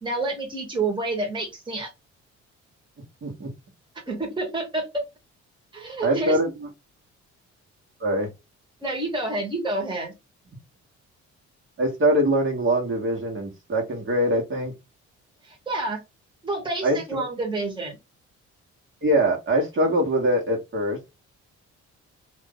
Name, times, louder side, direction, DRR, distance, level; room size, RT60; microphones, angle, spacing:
voice 1, 0.0-1.9 4.1-5.0 5.7-6.4 8.8-10.1 15.4-16.0 16.4-18.0, right 2 dB, 15° right, 1 dB, 1.4 m, -28 dB
voice 2, 3.2-3.5 6.0-6.7 8.0-8.3 11.8-14.7 16.8-17.2 19.0-21.0, right 1 dB, 40° right, 0 dB, 1.3 m, -23 dB
2.6 x 2.6 x 3.8 m, 0.23 s
cardioid pair, 90°, 30 cm